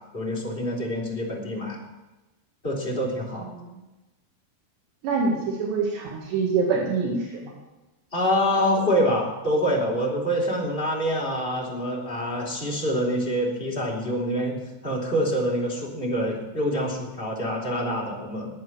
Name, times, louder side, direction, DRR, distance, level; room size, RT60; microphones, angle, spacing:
voice 1, 0.1-1.8 2.6-3.5 8.1-18.5, equal, 15° left, -3 dB, 3.6 m, -26 dB
voice 2, 5.0-7.5, right 4 dB, 80° right, -1 dB, 4.2 m, -25 dB
22.0 x 9.0 x 6.3 m, 1.1 s
omnidirectional pair, 4.9 m